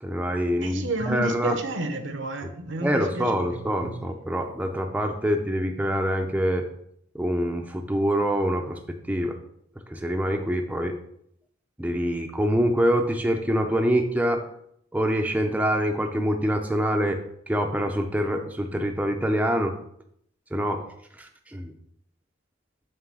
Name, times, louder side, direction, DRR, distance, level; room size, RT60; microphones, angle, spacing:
voice 1, 0.0-1.5 2.8-6.7 7.1-8.8 9.1-9.4 9.9-11.0 11.8-14.4 14.9-19.7 20.5-20.8 21.2-21.7, equal, 5° right, 3 dB, 0.5 m, -25 dB
voice 2, 0.6-4.1, right 2 dB, 65° right, 7 dB, 0.8 m, -31 dB
7.6 x 3.2 x 6.1 m, 0.69 s
head